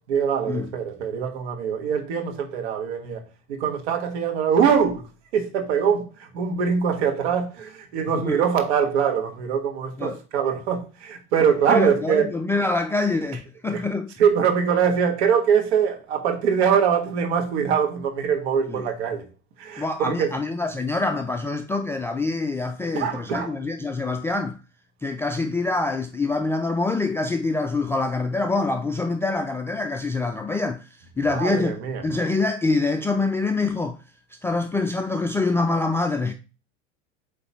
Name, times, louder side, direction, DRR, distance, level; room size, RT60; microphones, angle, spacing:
voice 1, 0.0-3.2 3.5-5.0 5.3-12.3 13.7-13.8 14.2-19.3 19.6-20.3 22.9-23.6 31.3-32.1, right 7 dB, 60° right, 1.7 m, -23 dB
voice 2, 11.7-14.1 18.7-18.8 19.8-24.6 25.0-30.9 31.2-31.7 32.0-34.0 34.4-36.3, left 3 dB, 5° left, 0.3 m, -25 dB
8.1 x 3.3 x 4.4 m
figure-of-eight pair, 80°, 37 cm